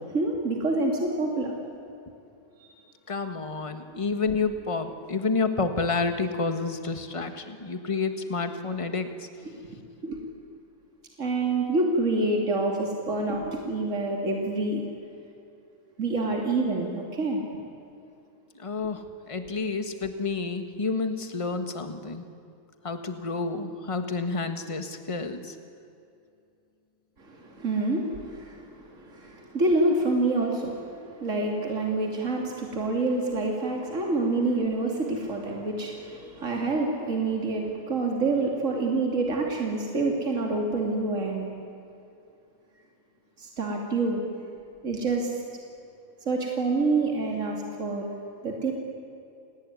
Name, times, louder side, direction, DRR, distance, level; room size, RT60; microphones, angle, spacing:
voice 1, 0.1-1.5 2.6-2.7 9.5-9.6 10.0-10.2 11.2-14.8 16.0-17.4 27.2-41.5 43.4-44.2 44.8-45.3 46.2-48.1 48.4-48.7, right 2 dB, 60° right, 0 dB, 3.2 m, -27 dB
voice 2, 3.1-9.3 18.5-22.2 22.8-25.6, left 4 dB, 20° left, 7 dB, 1.7 m, -29 dB
29.5 x 19.0 x 9.8 m, 2.6 s
omnidirectional pair, 1.5 m